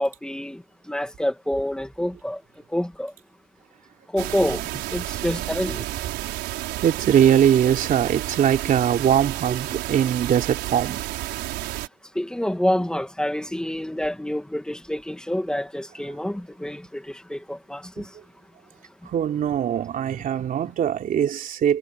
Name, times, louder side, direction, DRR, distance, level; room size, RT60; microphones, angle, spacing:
voice 1, 0.0-2.4 2.7-3.1 4.1-4.6 4.9-5.8 12.2-18.1, left 1 dB, 5° left, 2.2 m, -27 dB
sound 1, 4.2-11.9, right 17 dB, 85° right, 4.9 m, -31 dB
voice 2, 6.8-11.0 18.0-18.1 19.1-21.8, right 9 dB, 55° right, 3.4 m, -21 dB
cardioid pair, 110°, 17 cm